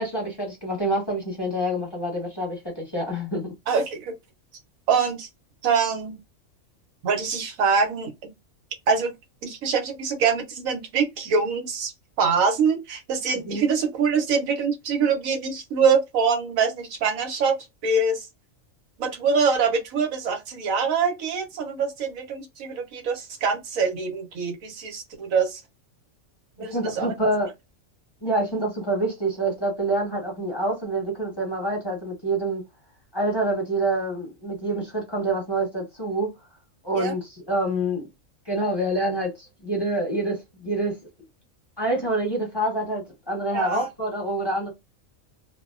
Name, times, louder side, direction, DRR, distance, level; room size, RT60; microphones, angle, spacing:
voice 1, 0.0-3.5 13.4-13.7 26.6-27.5 28.2-32.6 33.1-36.3 36.8-38.1 38.5-41.0 41.8-44.7, right 1 dB, 20° left, 1.0 m, -26 dB
voice 2, 3.7-4.1 4.9-5.3 5.6-6.2 7.0-8.3 8.9-9.1 9.4-11.9 12.2-17.6 17.8-18.3 19.0-25.6 26.6-27.2 37.0-37.1 43.5-43.9, right 5 dB, 90° right, 1.2 m, -24 dB
2.6 x 2.1 x 2.3 m
omnidirectional pair, 1.4 m